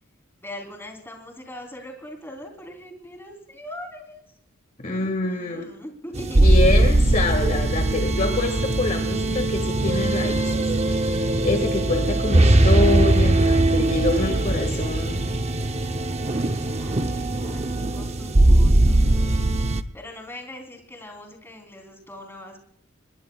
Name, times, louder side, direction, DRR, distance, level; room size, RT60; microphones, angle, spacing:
voice 1, 0.4-4.2 4.8-6.5 16.3-22.6, left 1 dB, 10° left, 2 dB, 3.5 m, -41 dB
voice 2, 4.8-5.7 6.4-10.5 10.8-15.3, left 2 dB, 40° left, 4 dB, 1.9 m, -26 dB
sound 1, 6.1-19.8, right 1 dB, 30° right, 0.7 m, -20 dB
27.0 x 21.5 x 2.4 m, 0.66 s
head